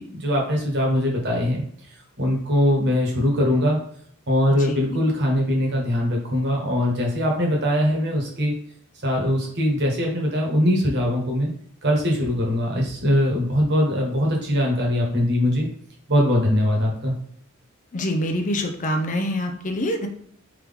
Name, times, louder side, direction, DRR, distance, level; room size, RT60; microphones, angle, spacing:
voice 1, 0.0-1.6 2.2-3.8 4.3-8.5 9.0-11.5 11.8-15.7 16.1-17.1, equal, 55° right, 0 dB, 1.2 m, -21 dB
voice 2, 4.6-5.0 17.9-20.1, equal, 35° left, 5 dB, 0.6 m, -25 dB
3.7 x 2.9 x 3.5 m, 0.63 s
head